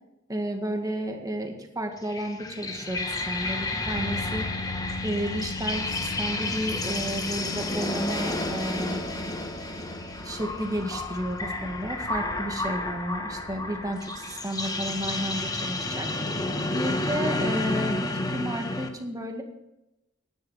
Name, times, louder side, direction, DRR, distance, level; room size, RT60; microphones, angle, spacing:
voice 1, 0.3-4.5 5.0-9.0 10.2-16.1 16.7-19.4, equal, 20° right, 3 dB, 1.9 m, -32 dB
sound 1, 2.0-18.9, left 2 dB, 20° left, 1.2 m, -31 dB
sound 2, 3.9-18.2, left 3 dB, 70° left, 2.9 m, -42 dB
sound 3, 4.6-14.7, equal, 35° left, 1.9 m, -48 dB
10.5 x 10.5 x 5.7 m, 0.92 s
head